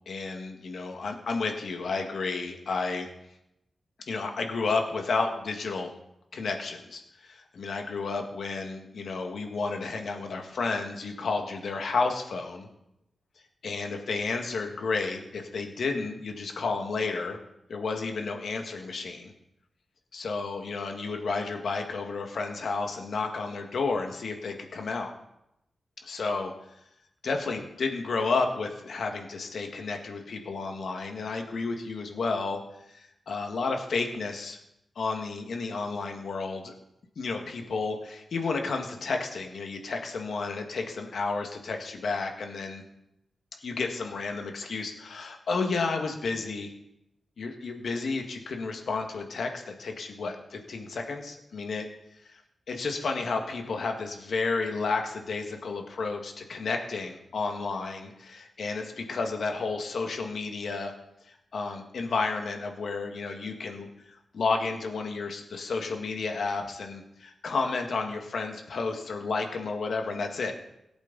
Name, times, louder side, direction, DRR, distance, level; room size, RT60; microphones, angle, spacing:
voice 1, 0.1-3.1 4.1-6.0 6.3-12.7 13.6-17.4 17.7-19.3 20.1-25.1 26.0-26.5 27.2-32.6 32.9-34.6 35.0-36.7 37.2-42.9 43.6-46.7 47.4-51.9 52.3-52.4 52.7-60.9 61.3-63.9 64.3-70.5, left 4 dB, 75° left, 4 dB, 1.8 m, -31 dB
17.5 x 8.1 x 4.1 m, 0.84 s
wide cardioid pair, 90°, 0 cm